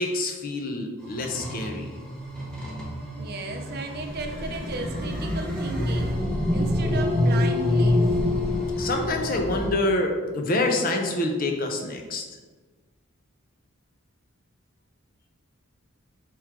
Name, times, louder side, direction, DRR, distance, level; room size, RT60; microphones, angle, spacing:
voice 1, 0.0-2.0 5.8-5.9 8.4-12.2, left 2 dB, 40° left, 3 dB, 0.5 m, -27 dB
sound 1, 1.0-9.7, left 1 dB, 5° left, 0.8 m, -26 dB
voice 2, 3.2-6.1 6.5-8.1, right 3 dB, 50° right, 4 dB, 0.5 m, -35 dB
3.6 x 3.0 x 4.5 m, 1.3 s
head